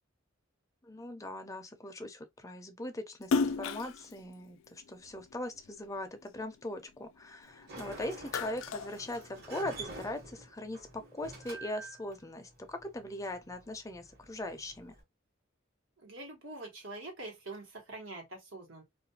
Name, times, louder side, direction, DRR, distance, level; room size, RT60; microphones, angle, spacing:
voice 1, 0.8-15.0, left 1 dB, 15° left, 0.5 m, -40 dB
Splash splatter, 3.2-5.8 6.2-7.7 8.0-9.8, left 4 dB, 80° left, 0.3 m, -34 dB
Sliding door, 7.4-15.0, right 2 dB, 55° right, 1.2 m, -49 dB
voice 2, 16.0-18.8, right 2 dB, 75° right, 1.2 m, -45 dB
2.4 x 2.3 x 2.7 m
head